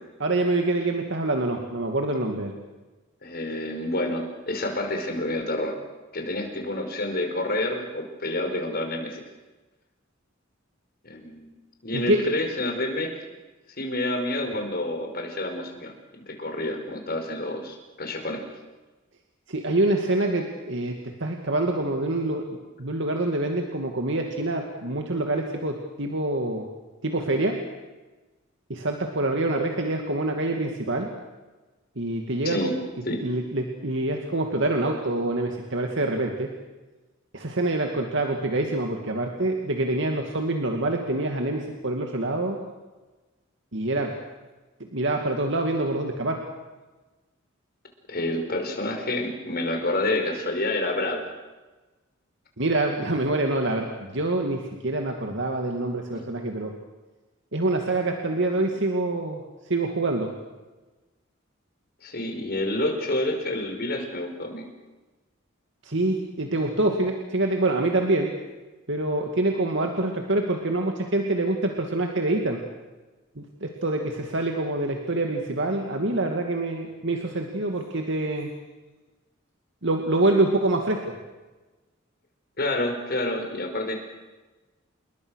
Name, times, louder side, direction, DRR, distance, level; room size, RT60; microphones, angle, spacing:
voice 1, 0.2-2.5 11.9-12.2 19.5-21.0 21.2-22.4 22.8-26.7 27.0-27.5 28.7-31.1 32.0-32.7 33.2-36.5 37.3-42.6 43.7-44.1 44.9-46.4 52.6-56.7 57.5-59.4 59.7-60.3 65.8-68.3 68.9-72.6 73.4-78.5 79.8-81.0, right 2 dB, 65° right, 3 dB, 2.4 m, -26 dB
voice 2, 3.2-5.8 6.1-9.2 11.0-11.5 11.8-13.3 13.8-15.9 16.3-18.4 32.4-32.7 33.0-33.2 48.1-51.2 56.1-56.2 62.0-64.6 82.6-84.0, left 1 dB, 50° left, 4 dB, 5.2 m, -28 dB
29.0 x 21.5 x 6.5 m, 1.2 s
head